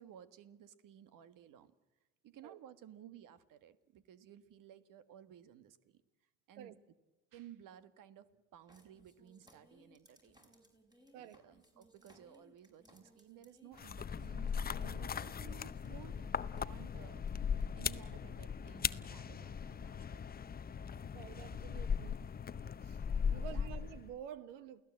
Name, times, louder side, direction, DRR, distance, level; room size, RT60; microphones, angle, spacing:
voice 1, 0.0-1.7 2.2-6.0 6.5-6.8 7.3-10.5 11.1-17.2 17.8-20.2 23.3-23.7, right 10 dB, 60° right, 1.6 m, -57 dB
sound 1, 8.7-16.6 17.3-17.4 17.6-18.0 18.7-18.8, equal, 10° right, 5.5 m, -66 dB
sound 2, 13.8-24.1, left 6 dB, 25° left, 0.7 m, -39 dB
voice 2, 21.1-22.2 22.8-23.0 23.3-24.8, right 10 dB, 90° right, 1.3 m, -50 dB
29.0 x 17.0 x 7.6 m
supercardioid pair, 80°, 36 cm